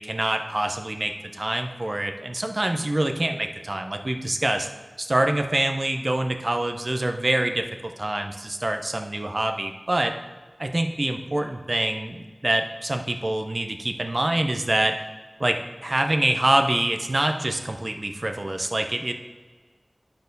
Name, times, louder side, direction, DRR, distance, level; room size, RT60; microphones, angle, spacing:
voice 1, 0.0-4.7 5.0-10.1 10.6-14.9 15.4-19.1, right 1 dB, 55° right, 5 dB, 0.7 m, -25 dB
10.5 x 4.4 x 5.3 m, 1.4 s
wide cardioid pair, 50°, 0 cm